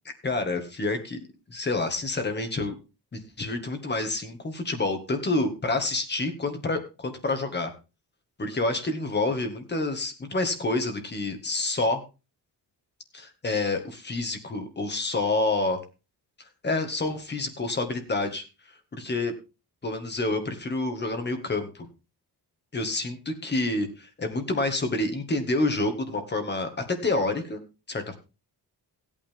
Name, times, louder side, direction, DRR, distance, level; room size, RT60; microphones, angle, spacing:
voice 1, 0.1-1.2 1.5-2.7 3.1-7.7 8.4-12.0 13.1-15.8 16.6-18.4 18.9-19.3 19.8-21.9 22.7-27.6 27.9-28.2, left 2 dB, 25° left, 7 dB, 1.8 m, -28 dB
16.0 x 8.9 x 3.6 m, 0.30 s
wide cardioid pair, 160°, 39 cm